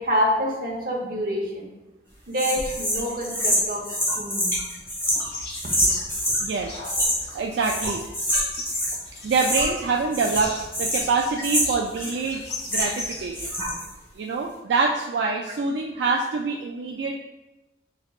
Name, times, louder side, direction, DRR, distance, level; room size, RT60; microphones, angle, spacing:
voice 1, 0.0-1.7 2.3-3.8 4.2-4.5 9.6-9.7, equal, 55° right, -2 dB, 1.0 m, -26 dB
sound 1, 2.3-6.4 6.8-7.3 7.6-9.0 9.3-9.9 10.1-13.1 13.3-13.9, equal, 15° left, 1.5 m, -26 dB
sound 2, 5.0-13.6, left 2 dB, 75° left, 1.1 m, -39 dB
voice 2, 6.4-6.8 7.3-8.0 9.2-12.4 12.7-13.5 14.1-17.1, right 4 dB, 80° right, 0 dB, 0.3 m, -25 dB
6.1 x 3.3 x 2.4 m, 1.0 s
head